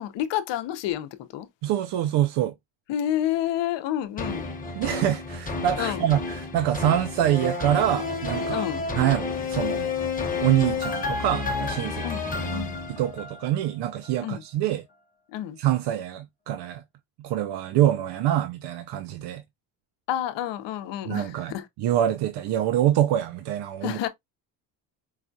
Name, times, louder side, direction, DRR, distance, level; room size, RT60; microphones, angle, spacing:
voice 1, 0.0-1.5 2.9-4.5 5.8-6.1 8.5-8.9 12.0-12.8 14.2-14.4 15.3-15.6 20.1-21.7 23.8-24.1, left 11 dB, 75° left, 0.7 m, -29 dB
voice 2, 1.6-2.5 4.7-8.7 8.9-9.9 10.4-12.4 12.9-14.8 15.6-16.8 17.2-19.4 21.1-24.0, right 12 dB, 65° right, 0.5 m, -25 dB
sound 1, 4.2-13.6 14.0-14.1, left 4 dB, 20° left, 0.9 m, -30 dB
4.8 x 2.3 x 2.5 m
cardioid pair, 120°, 44 cm